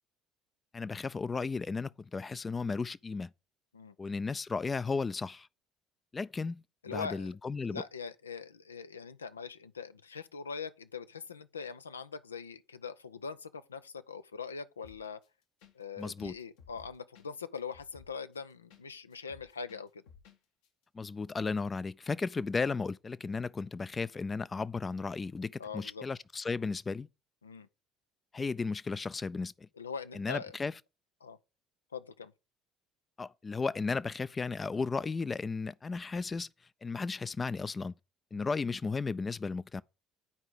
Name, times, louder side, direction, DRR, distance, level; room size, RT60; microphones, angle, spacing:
voice 1, 0.7-3.3 4.0-5.5 6.1-7.8 16.0-16.4 20.9-27.1 28.3-29.7 30.1-30.7 33.2-36.5 36.8-37.9 38.3-39.8, left 4 dB, 25° left, 0.4 m, -34 dB
voice 2, 6.8-7.3 7.7-15.2 15.7-20.0 25.6-26.0 27.4-27.7 29.8-30.5 31.2-31.4 31.9-32.3 38.3-38.4, left 5 dB, 85° left, 0.5 m, -42 dB
sound 1, 14.8-15.3 15.6-15.7 16.0-18.8 19.1-20.4 20.6-20.7, left 6 dB, 70° left, 1.3 m, -57 dB
9.5 x 4.9 x 4.9 m
figure-of-eight pair, 55°, 0 cm